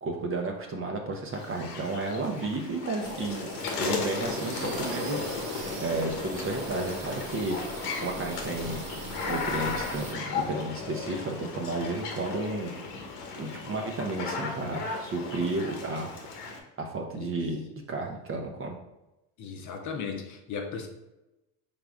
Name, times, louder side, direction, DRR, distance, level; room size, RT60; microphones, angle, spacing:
voice 1, 0.0-3.5 3.8-7.6 8.0-8.8 9.3-12.7 13.4-16.1 16.4-16.5 16.8-17.6 17.9-18.7, right 2 dB, 30° right, 2 dB, 0.6 m, -32 dB
sound 1, 1.3-16.6, left 4 dB, 85° left, 1.0 m, -35 dB
sound 2, 3.0-10.1, right 6 dB, 80° right, 0.7 m, -43 dB
voice 2, 19.4-20.9, left 5 dB, 40° left, 3 dB, 0.7 m, -36 dB
4.9 x 3.5 x 2.4 m, 0.96 s
supercardioid pair, 100°, 47 cm